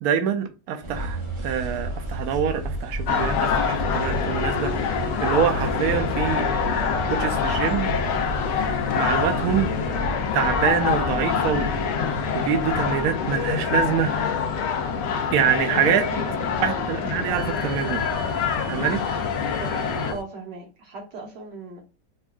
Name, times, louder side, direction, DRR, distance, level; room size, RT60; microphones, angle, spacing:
voice 1, 0.0-4.7 5.2-6.5 7.1-7.9 9.0-9.7 10.3-11.7 12.3-14.1 15.3-16.0 16.6-18.0 18.7-19.0, right 8 dB, 70° right, 1.0 m, -25 dB
sound 1, 0.8-20.2, right 1 dB, 35° right, 0.5 m, -34 dB
sound 2, 3.1-20.1, left 6 dB, 90° left, 1.3 m, -25 dB
voice 2, 15.7-17.8 19.6-19.8 20.1-21.8, right 3 dB, 90° right, 1.7 m, -38 dB
4.4 x 2.4 x 2.3 m
omnidirectional pair, 1.8 m